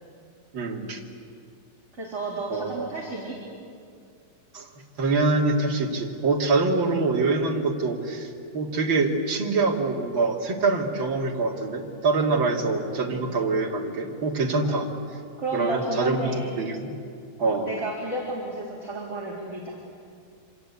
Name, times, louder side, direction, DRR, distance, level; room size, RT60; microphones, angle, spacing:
voice 1, 0.5-1.0 2.5-2.9 4.5-4.7 5.0-14.9 15.5-16.9 17.4-17.7, right 3 dB, 35° right, -1 dB, 2.9 m, -25 dB
voice 2, 1.9-3.4 14.6-14.7 15.4-16.5 17.4-19.8, right 2 dB, 20° right, -4 dB, 3.6 m, -32 dB
27.0 x 26.0 x 8.4 m, 2.3 s
omnidirectional pair, 4.4 m